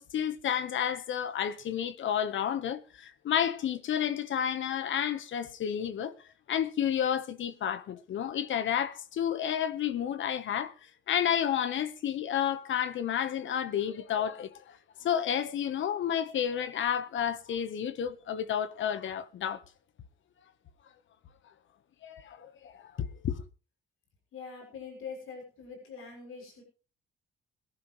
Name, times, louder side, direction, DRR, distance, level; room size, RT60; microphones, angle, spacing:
voice 1, 0.0-6.2 6.5-10.7 11.1-19.6 22.0-23.4, left 9 dB, 65° left, 1.2 m, -31 dB
voice 2, 24.3-26.6, left 5 dB, 90° left, 6.6 m, -43 dB
22.0 x 11.5 x 3.2 m
cardioid pair, 155°, 21 cm